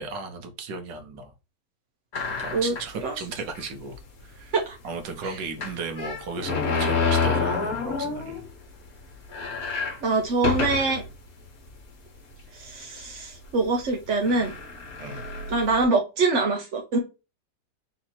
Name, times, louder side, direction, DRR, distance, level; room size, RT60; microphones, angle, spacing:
voice 1, 0.0-1.3 2.4-3.9 4.2-4.5 4.8-8.4 15.0-15.2, right 4 dB, 75° right, 6 dB, 1.5 m, -35 dB
sound 1, 2.1-3.0 3.6-3.7 3.9-4.0 5.6-8.5 8.9-9.0 9.2-11.1 11.7-11.8 12.7-13.0 13.8-13.9 14.3-15.8, left 4 dB, 50° left, 1.5 m, -28 dB
voice 2, 10.0-11.0 12.5-14.5 15.5-17.0, right 3 dB, 55° right, 2 dB, 0.8 m, -24 dB
4.0 x 2.9 x 4.2 m, 0.28 s
omnidirectional pair, 2.1 m